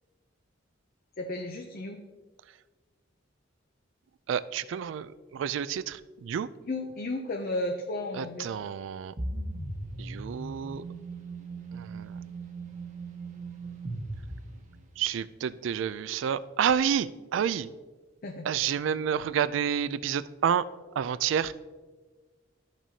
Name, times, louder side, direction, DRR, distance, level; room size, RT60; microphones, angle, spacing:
voice 1, 1.2-2.0 6.6-8.5 18.2-18.5, left 2 dB, 50° left, 4 dB, 0.6 m, -33 dB
voice 2, 4.3-6.5 8.2-9.1 10.0-10.9 11.7-12.1 15.0-17.7 18.4-20.6 21.0-21.5, right 8 dB, 70° right, 16 dB, 0.3 m, -29 dB
sound 1, 9.2-15.1, right 2 dB, 40° right, 1.1 m, -38 dB
12.0 x 6.0 x 2.8 m, 1.4 s
head